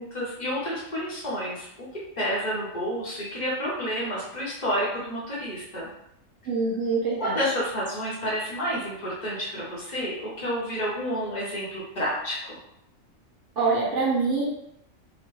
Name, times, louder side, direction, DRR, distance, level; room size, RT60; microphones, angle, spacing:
voice 1, 0.0-1.9 2.2-5.9 7.2-12.5, equal, 35° left, -6 dB, 0.9 m, -30 dB
voice 2, 6.4-7.4 13.6-14.4, right 4 dB, 65° right, -6 dB, 1.1 m, -24 dB
3.1 x 2.2 x 3.0 m, 0.80 s
omnidirectional pair, 1.4 m